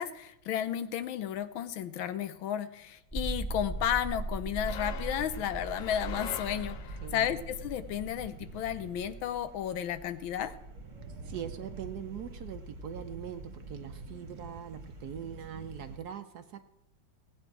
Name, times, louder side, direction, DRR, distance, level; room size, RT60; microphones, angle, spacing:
voice 1, 0.0-10.5, left 10 dB, 80° left, 12 dB, 1.6 m, -33 dB
sound 1, 3.1-13.2, right 2 dB, 5° left, 0.6 m, -40 dB
sound 2, 3.7-16.0, right 2 dB, 40° right, 1.6 m, -47 dB
sound 3, 4.6-7.3, left 7 dB, 65° left, 0.8 m, -44 dB
voice 2, 7.0-7.4 11.2-16.6, right 9 dB, 65° right, 8 dB, 1.1 m, -42 dB
17.5 x 8.9 x 4.7 m, 0.83 s
omnidirectional pair, 2.2 m